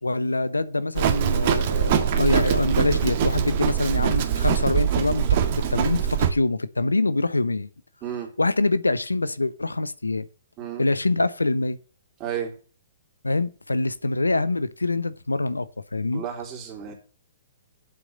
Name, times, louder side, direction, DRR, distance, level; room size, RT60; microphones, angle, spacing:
voice 1, 0.0-7.7 8.4-10.3 10.8-11.8 13.2-16.2, left 2 dB, 90° left, 0.8 m, -25 dB
Livestock farm animals working animals, 1.0-6.3, right 9 dB, 50° right, 1.7 m, -23 dB
voice 2, 8.0-8.3 10.6-10.9 12.2-12.5 16.1-16.9, right 9 dB, 30° right, 3.7 m, -32 dB
7.8 x 6.0 x 7.9 m
figure-of-eight pair, 120°, 0 cm